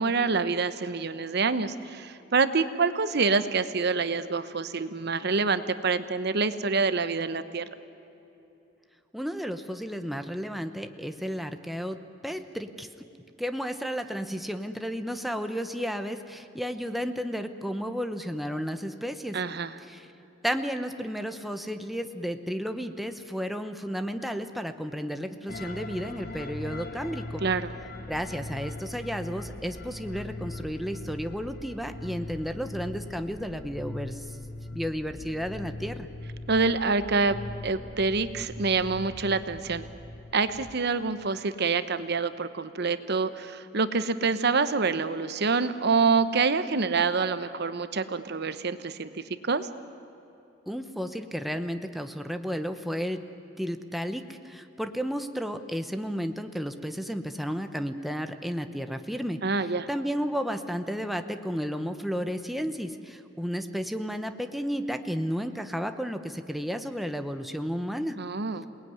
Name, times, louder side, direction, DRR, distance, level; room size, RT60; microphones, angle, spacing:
voice 1, 0.0-7.6 19.3-19.7 27.4-27.7 36.5-37.4 37.6-39.9 40.3-49.7 59.4-59.9 68.2-68.6, right 4 dB, 60° right, 12 dB, 1.0 m, -26 dB
voice 2, 9.1-12.9 13.4-19.4 19.9-20.1 20.4-27.4 28.1-34.2 34.7-36.1 50.7-53.2 53.6-59.4 59.9-68.2, equal, ahead, 7 dB, 1.0 m, -32 dB
sound 1, 25.5-40.7, left 2 dB, 55° left, 1.6 m, -40 dB
28.0 x 19.5 x 9.6 m, 2.9 s
head